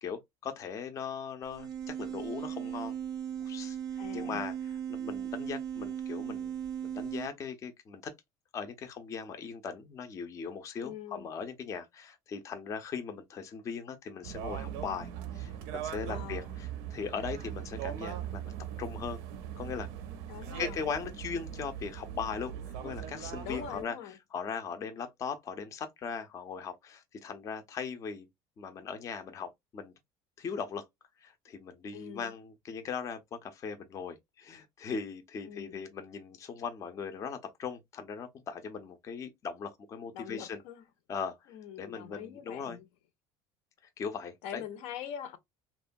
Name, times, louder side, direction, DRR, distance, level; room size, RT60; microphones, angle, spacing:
voice 1, 0.0-2.9 3.4-3.8 4.1-8.1 8.5-18.5 18.8-19.2 19.6-19.9 20.6-28.3 28.6-29.9 30.4-30.8 31.2-40.6 41.1-41.4 41.8-42.8 44.0-44.6, left 6 dB, 30° left, 0.4 m, -39 dB
sound 1, 1.4-7.3, right 9 dB, 35° right, 0.4 m, -37 dB
voice 2, 4.0-4.4 10.8-11.3 16.1-16.6 20.3-20.9 23.4-24.2 31.9-32.3 35.5-35.8 40.1-40.8 41.5-42.9 44.4-45.4, left 9 dB, 75° left, 0.6 m, -43 dB
sound 2, 14.2-23.8, right 10 dB, 85° right, 0.6 m, -40 dB
2.9 x 2.2 x 2.5 m
cardioid pair, 155°, 11 cm